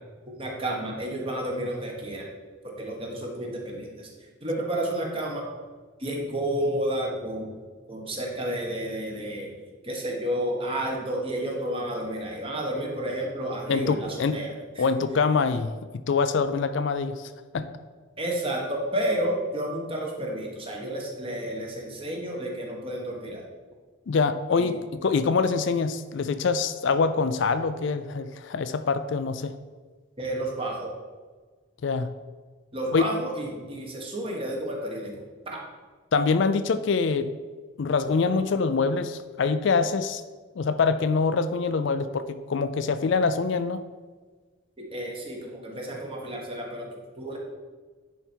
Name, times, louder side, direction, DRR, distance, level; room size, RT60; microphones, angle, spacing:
voice 1, 0.4-2.2 2.6-4.1 4.4-5.6 6.0-7.6 7.9-14.8 18.2-23.4 24.5-24.8 30.2-30.9 32.7-35.2 35.5-35.6 44.8-47.4, right 1 dB, 25° right, -1 dB, 1.3 m, -31 dB
voice 2, 13.7-14.4 14.8-15.7 16.1-17.7 24.1-29.5 31.8-32.1 32.9-33.1 36.1-37.3 37.8-40.2 40.6-43.8, left 4 dB, 60° left, 11 dB, 0.4 m, -25 dB
10.0 x 4.6 x 4.5 m, 1.4 s
head